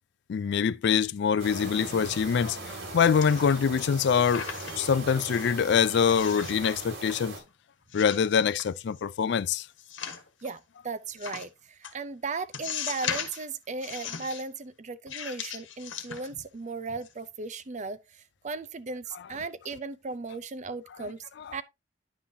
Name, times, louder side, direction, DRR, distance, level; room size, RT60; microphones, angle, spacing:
voice 1, 0.3-4.5 4.8-7.3 7.9-9.7 21.4-21.5, left 7 dB, 65° left, 0.4 m, -24 dB
sound 1, 1.4-7.4, right 2 dB, 80° right, 2.8 m, -39 dB
sound 2, 3.2-3.8 4.1-4.9 5.3-5.5 6.1-6.7 7.1-7.5 7.9-9.0 9.8-10.5 11.2-11.5 11.8-11.9 12.5-13.4 13.8-14.4 15.1-16.6 16.9-17.1, left 7 dB, 90° left, 1.3 m, -38 dB
voice 2, 10.4-21.2 21.5-21.6, right 4 dB, 40° right, 0.6 m, -37 dB
10.0 x 5.6 x 2.7 m
head